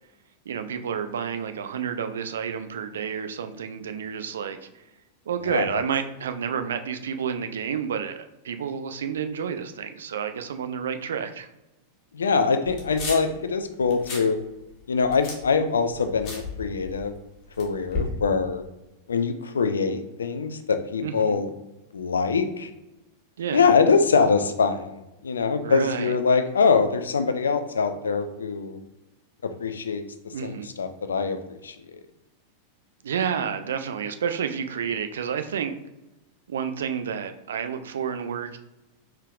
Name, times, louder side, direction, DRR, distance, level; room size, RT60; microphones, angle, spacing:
voice 1, 0.5-4.8 5.3-11.5 21.0-21.4 23.4-23.6 25.6-26.1 30.3-30.7 33.0-35.8 36.5-38.6, right 7 dB, 65° right, 9 dB, 0.3 m, -30 dB
voice 2, 5.4-5.8 12.1-14.4 14.9-17.1 17.6-18.6 19.1-21.5 21.9-22.7 23.5-28.8 29.6-31.8, left 5 dB, 70° left, 9 dB, 0.3 m, -23 dB
sound 1, 12.7-13.4 13.8-14.3 14.6-17.2 17.5-18.1, left 3 dB, 40° left, 1.2 m, -34 dB
4.5 x 3.4 x 2.4 m, 0.98 s
figure-of-eight pair, 90°, 0 cm